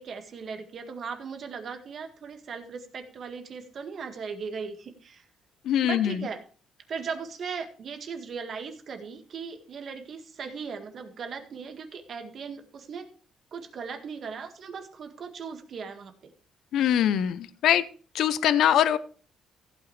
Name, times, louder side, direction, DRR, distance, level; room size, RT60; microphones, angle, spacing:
voice 1, 0.0-5.2 5.8-6.4 6.9-13.1 13.5-16.3, right 5 dB, 50° right, 6 dB, 1.8 m, -38 dB
voice 2, 5.7-6.2 16.7-17.8 18.1-19.0, left 10 dB, 70° left, 15 dB, 0.7 m, -22 dB
15.0 x 8.8 x 3.2 m, 0.40 s
cardioid pair, 125°, 0 cm